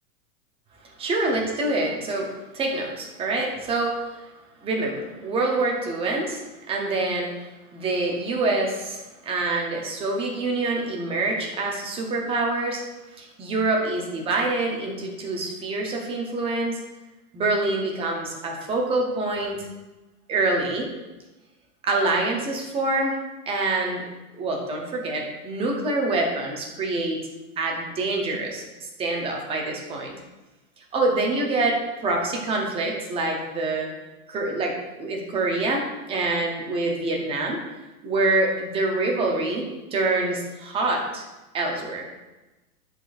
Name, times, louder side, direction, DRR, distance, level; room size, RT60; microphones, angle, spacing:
voice 1, 1.0-4.0 4.6-7.3 7.7-12.8 13.2-16.8 17.3-19.7 20.3-20.9 21.8-23.2 23.5-24.1 24.3-27.2 27.6-28.6 29.0-30.1 30.9-33.9 34.3-35.8 36.1-37.6 38.0-41.2 41.5-42.1, right 2 dB, 15° right, 0 dB, 0.6 m, -26 dB
11.0 x 4.0 x 2.5 m, 1.1 s
supercardioid pair, 145°, 46 cm